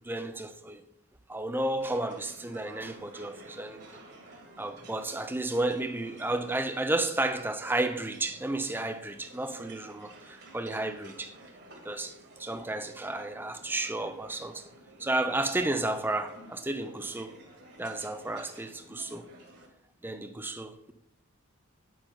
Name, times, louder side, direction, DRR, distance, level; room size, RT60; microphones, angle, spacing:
voice 1, 0.0-0.8 1.3-3.8 4.6-11.3 11.8-14.7 15.0-17.3 17.8-19.3 20.0-20.9, right 2 dB, 10° right, 0.4 m, -32 dB
sound 1, 1.8-19.7, right 2 dB, 45° right, 1.8 m, -52 dB
9.9 x 5.6 x 3.9 m
head